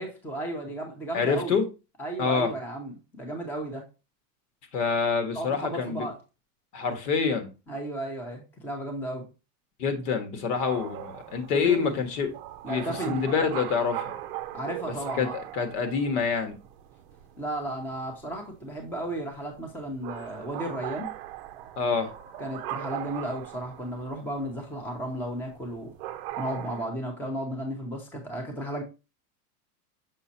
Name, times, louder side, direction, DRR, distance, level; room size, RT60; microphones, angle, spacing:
voice 1, 0.0-1.6 2.0-3.8 5.3-6.2 7.7-9.3 11.6-11.9 12.6-13.2 14.5-15.4 17.4-21.1 22.4-25.9 26.4-28.8, right 1 dB, 5° left, 0.7 m, -34 dB
voice 2, 1.1-1.7 2.2-2.5 4.7-6.1 6.7-7.5 9.8-12.3 12.7-14.1 14.9-16.6 21.8-22.1, left 5 dB, 70° left, 1.7 m, -27 dB
sound 1, 10.6-26.9, right 13 dB, 40° right, 0.6 m, -40 dB
6.2 x 5.5 x 2.8 m
supercardioid pair, 155°, 47 cm